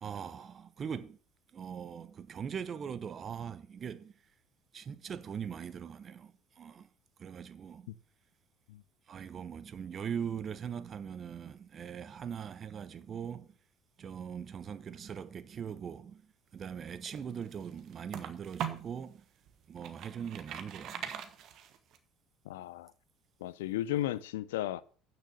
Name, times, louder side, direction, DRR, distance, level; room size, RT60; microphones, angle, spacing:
voice 1, 0.0-1.2 1.5-4.1 4.7-6.9 7.2-7.9 9.1-13.5 14.0-19.3 19.7-21.3, right 7 dB, 40° right, 0.9 m, -41 dB
sound 1, 16.8-19.0 19.5-22.0, right 9 dB, 60° right, 1.3 m, -41 dB
voice 2, 22.5-22.9 23.4-24.8, left 13 dB, 90° left, 0.5 m, -34 dB
9.1 x 6.2 x 6.6 m
supercardioid pair, 85°, 0 cm